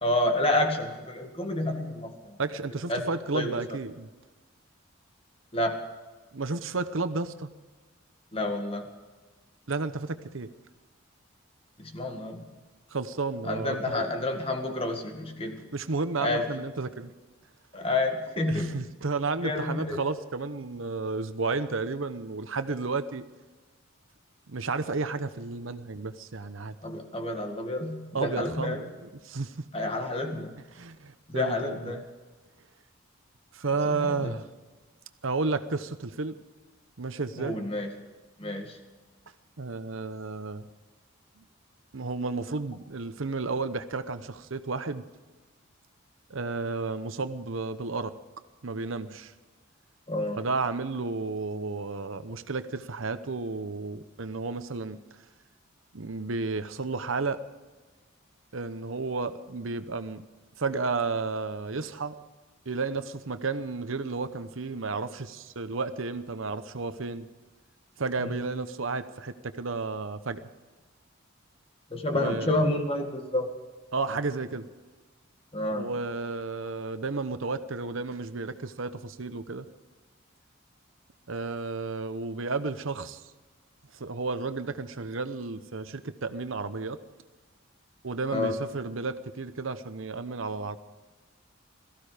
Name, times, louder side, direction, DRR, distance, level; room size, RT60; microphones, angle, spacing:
voice 1, 0.0-2.4 2.9-3.1 3.3-3.6 5.5-5.8 8.3-8.8 11.8-12.4 13.4-15.6 16.2-16.5 17.7-18.8 19.4-20.0 26.8-28.9 29.7-30.5 31.3-32.0 33.9-34.3 37.4-37.9 38.4-38.8 50.1-50.4 68.2-68.4 71.9-73.5 75.5-75.9 88.3-88.6, left 2 dB, 25° left, 4 dB, 1.8 m, -29 dB
voice 2, 2.4-4.1 6.3-7.5 9.7-10.5 12.9-14.0 15.7-17.1 18.5-23.2 24.5-26.7 28.1-29.7 30.7-32.0 33.5-34.5 35.2-36.4 37.0-37.6 39.6-40.7 41.4-41.5 41.9-45.0 46.3-48.1 48.6-49.3 50.4-55.0 55.9-57.4 58.5-60.2 60.6-62.1 62.7-67.3 68.0-70.4 72.1-72.6 73.9-74.6 75.7-79.7 81.3-83.2 83.9-87.0 88.0-90.8, right 3 dB, 70° right, 11 dB, 0.9 m, -32 dB
17.5 x 15.0 x 5.0 m, 1.3 s
head